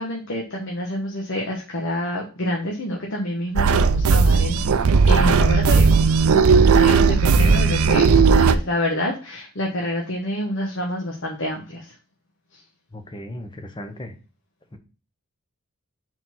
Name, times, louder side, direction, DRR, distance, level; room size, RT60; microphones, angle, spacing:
voice 1, 0.0-5.9 6.3-11.9, left 1 dB, 55° left, -1 dB, 1.2 m, -27 dB
sound 1, 3.6-8.5, right 5 dB, 80° right, 0.5 m, -16 dB
voice 2, 12.9-14.1 14.7-14.8, left 1 dB, 20° left, 6 dB, 0.8 m, -35 dB
4.9 x 4.0 x 5.7 m, 0.35 s
head